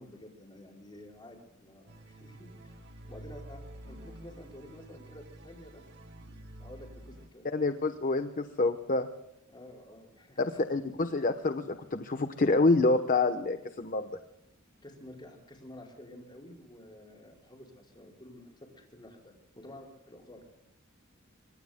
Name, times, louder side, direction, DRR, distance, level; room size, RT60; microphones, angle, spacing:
voice 1, 0.0-2.8 3.1-5.8 6.1-7.5 9.5-10.6 14.8-20.6, left 1 dB, 20° left, -1 dB, 5.1 m, -51 dB
sound 1, 1.9-7.3, right 1 dB, 55° right, 2.2 m, -49 dB
voice 2, 7.5-9.1 10.4-14.1, left 3 dB, 40° left, 8 dB, 1.0 m, -27 dB
26.0 x 24.5 x 2.2 m, 0.84 s
head